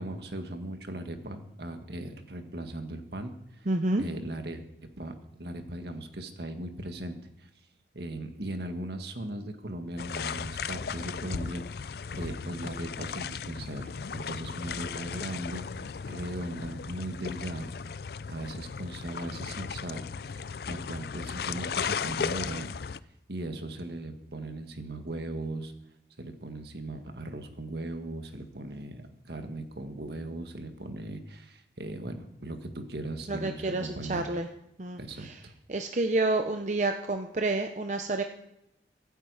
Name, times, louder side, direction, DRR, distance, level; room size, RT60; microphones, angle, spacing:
voice 1, 0.0-3.7 4.0-4.6 5.0-7.5 7.9-15.7 16.1-17.7 18.3-20.0 20.3-22.7 23.3-25.7 26.2-34.4 35.0-35.5, right 1 dB, 70° right, 6 dB, 1.6 m, -38 dB
voice 2, 3.7-4.0 33.3-34.5 34.8-35.3 35.7-38.2, right 2 dB, 40° right, 5 dB, 0.7 m, -29 dB
sound 1, 10.0-23.0, left 6 dB, 60° left, 0.4 m, -36 dB
23.5 x 9.0 x 4.9 m, 0.86 s
head